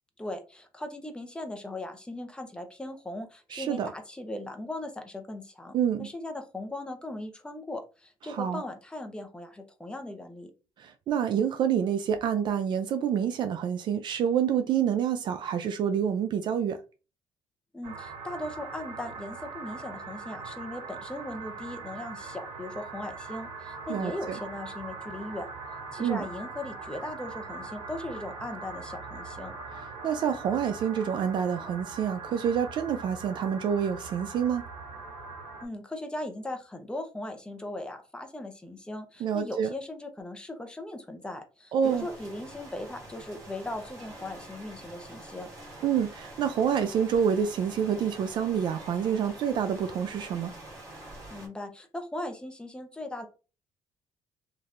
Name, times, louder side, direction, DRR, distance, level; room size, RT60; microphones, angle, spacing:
voice 1, 0.2-5.7 6.0-10.5 17.7-25.5 25.9-29.5 35.6-45.5 51.3-53.3, left 1 dB, 10° left, 0.6 m, -38 dB
voice 2, 3.5-3.9 5.7-6.1 8.3-8.6 10.8-16.8 23.9-24.4 26.0-26.2 30.0-34.6 39.2-39.7 41.7-42.1 45.8-50.5, right 8 dB, 55° right, 0.3 m, -27 dB
sound 1, 17.8-35.7, right 4 dB, 75° right, 0.9 m, -41 dB
sound 2, 41.8-51.5, right 1 dB, 35° right, 1.7 m, -46 dB
3.2 x 2.6 x 2.4 m
cardioid pair, 110°, 9 cm